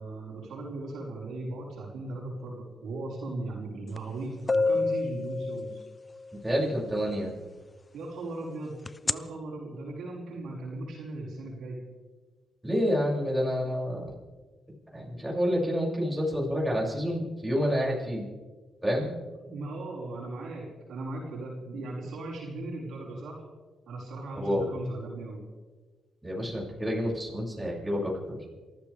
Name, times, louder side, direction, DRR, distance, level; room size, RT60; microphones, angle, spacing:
voice 1, 0.0-5.8 7.9-8.7 9.0-11.8 19.4-23.4 23.9-25.4, right 2 dB, 80° right, -4 dB, 5.4 m, -37 dB
sound 1, 4.0-4.1 4.5-6.2 8.9-9.1, left 3 dB, 30° left, 0.5 m, -27 dB
voice 2, 6.4-7.3 12.6-14.1 14.9-18.3 18.8-19.1 24.3-24.6 26.2-28.4, equal, 10° right, -4 dB, 7.0 m, -28 dB
28.0 x 14.5 x 3.6 m, 1.3 s
cardioid pair, 80°, 0 cm